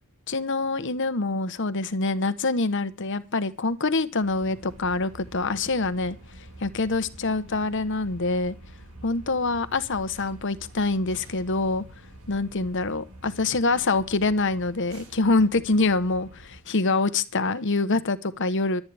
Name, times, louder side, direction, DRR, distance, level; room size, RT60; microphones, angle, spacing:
voice 1, 0.3-6.2 6.6-8.5 9.0-11.8 12.3-18.8, left 3 dB, 55° left, 1.1 m, -25 dB
sound 1, 4.2-16.6, right 1 dB, 70° right, 5.3 m, -47 dB
24.0 x 9.5 x 3.4 m
head